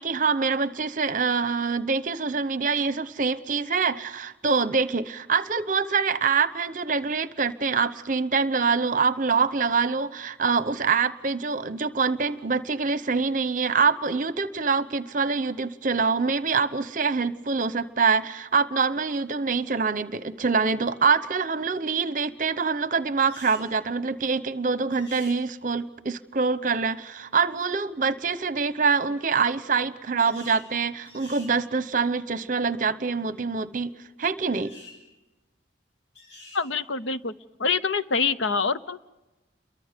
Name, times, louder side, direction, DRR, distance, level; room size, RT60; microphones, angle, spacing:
voice 1, 0.0-33.9 34.2-34.7, right 5 dB, 45° right, 15 dB, 0.9 m, -25 dB
sound 1, 23.2-23.7 24.9-25.4 30.2-30.7 31.1-31.5 34.5-35.0 36.1-36.7, left 2 dB, 70° left, 7.6 m, -47 dB
voice 2, 36.5-37.3 37.6-39.0, left 5 dB, 85° left, 14 dB, 0.8 m, -25 dB
29.5 x 23.0 x 5.2 m, 1.1 s
head